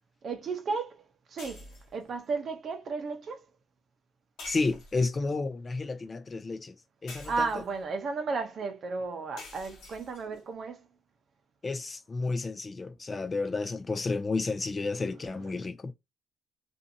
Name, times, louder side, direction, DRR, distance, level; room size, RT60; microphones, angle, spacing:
voice 1, 0.2-3.5 7.3-10.8, right 4 dB, 55° right, 0.7 m, -34 dB
sound 1, 1.4-2.0 4.4-5.2 7.1-7.8 9.4-10.4, left 2 dB, 85° left, 1.0 m, -47 dB
voice 2, 4.5-6.7 7.0-7.5 11.6-15.9, left 3 dB, 35° left, 0.4 m, -31 dB
2.6 x 2.5 x 2.6 m
cardioid pair, 90°, 0 cm